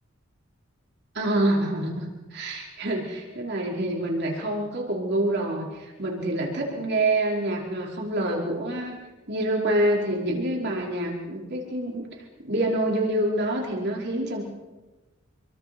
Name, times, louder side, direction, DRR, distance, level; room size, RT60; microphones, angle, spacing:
voice 1, 1.1-9.0 9.3-12.0 12.4-14.4, right 1 dB, 55° right, -1 dB, 5.0 m, -26 dB
27.5 x 23.5 x 6.2 m, 1.1 s
head